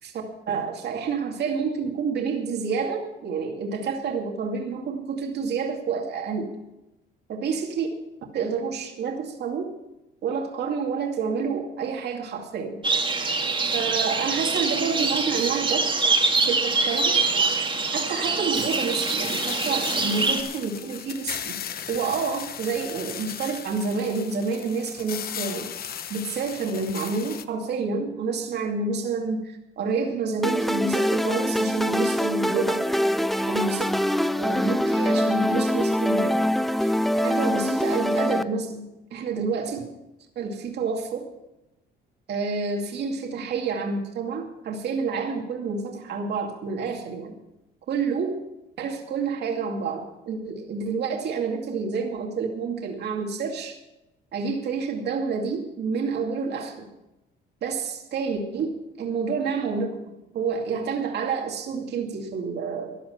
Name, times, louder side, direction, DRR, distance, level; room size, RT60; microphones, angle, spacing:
voice 1, 0.0-6.5 7.3-7.9 8.3-9.7 10.2-12.8 13.7-15.9 16.4-17.2 17.9-21.6 21.9-25.7 26.1-32.8 33.5-33.9 34.4-39.8 40.4-41.3 42.3-47.3 47.9-48.4 48.8-53.8 54.3-56.9 57.6-63.0, right 5 dB, 60° right, 2 dB, 2.4 m, -29 dB
sound 1, 12.8-20.4, right 3 dB, 25° right, 2.1 m, -24 dB
sound 2, 18.5-27.4, left 9 dB, 55° left, 1.0 m, -36 dB
sound 3, 30.4-38.4, equal, ahead, 0.5 m, -24 dB
14.5 x 11.0 x 5.8 m, 0.94 s
cardioid pair, 115°, 19 cm